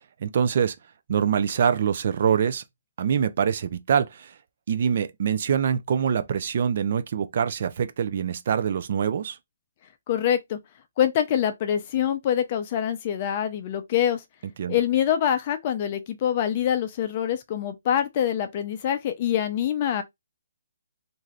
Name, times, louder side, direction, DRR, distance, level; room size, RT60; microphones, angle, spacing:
voice 1, 0.2-0.8 1.1-2.6 3.0-4.3 4.7-9.4 14.6-14.8, right 7 dB, 45° right, 0.4 m, -24 dB
voice 2, 10.1-10.6 11.0-14.2 14.7-20.0, left 10 dB, 30° left, 0.5 m, -25 dB
3.2 x 2.6 x 2.4 m
hypercardioid pair, 165°, 0 cm